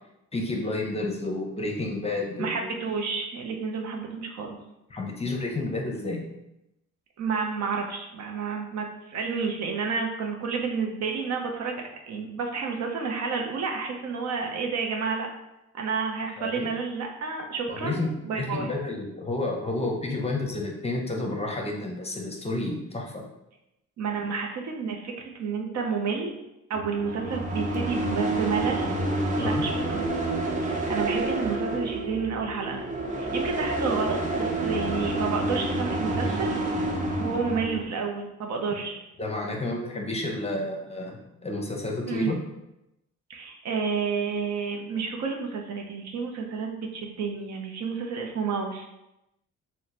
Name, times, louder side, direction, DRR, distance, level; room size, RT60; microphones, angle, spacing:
voice 1, 0.3-2.7 4.9-6.2 16.4-16.7 17.7-23.2 29.4-29.6 36.1-36.3 38.7-38.8 39.2-42.4, left 2 dB, 20° left, 0 dB, 0.6 m, -31 dB
voice 2, 2.4-4.6 7.2-15.3 15.7-18.7 24.0-26.3 26.7-28.9 29.4-30.1 30.6-32.9 33.2-39.0 42.1-42.3 43.3-48.9, right 5 dB, 65° right, 2 dB, 0.6 m, -30 dB
sound 1, 26.7-37.8, right 2 dB, 25° right, 0.5 m, -28 dB
3.0 x 2.1 x 4.0 m, 0.89 s
cardioid pair, 90°, 30 cm